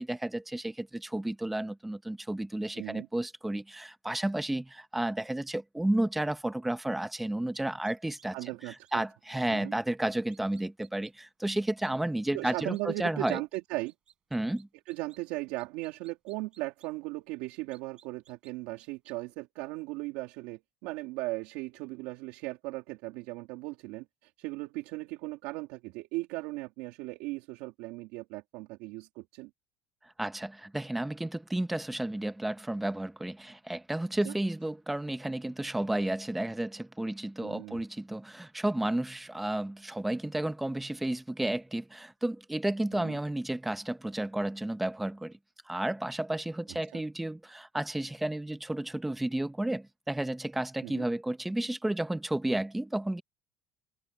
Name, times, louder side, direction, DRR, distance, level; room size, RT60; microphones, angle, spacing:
voice 1, 0.0-8.4 8.6-13.4 14.3-14.7 30.2-45.4 45.7-53.2, right 1 dB, 5° right, 1.0 m, -32 dB
voice 2, 2.7-3.1 8.3-9.0 9.5-9.7 12.3-13.9 14.9-29.5 34.2-34.3 37.4-37.8 42.9-43.2 46.9-47.0 50.8-51.1, right 21 dB, 75° right, 2.4 m, -37 dB
sound 1, 7.5-8.5 8.8-8.9 10.3-11.1 11.5-11.9 12.7-13.6 13.8-15.2 15.6-16.9 17.7-18.5 18.8-19.1, right 9 dB, 35° right, 5.9 m, -60 dB
open air
cardioid pair, 140°, 2 cm